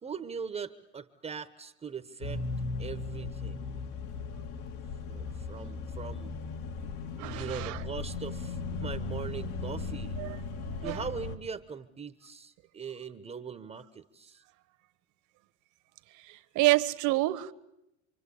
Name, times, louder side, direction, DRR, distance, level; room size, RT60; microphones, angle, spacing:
voice 1, 0.0-2.4 2.8-3.7 5.1-6.4 7.2-10.2 10.8-14.4, right 6 dB, 20° right, 9 dB, 1.1 m, -41 dB
sound 1, 2.2-11.4, left 3 dB, 70° left, 2.5 m, -37 dB
voice 2, 7.2-7.8 10.2-10.4 10.8-11.0 16.3-17.5, right 18 dB, 55° right, 11 dB, 1.5 m, -28 dB
27.5 x 24.0 x 8.6 m, 0.85 s
supercardioid pair, 125°, 36 cm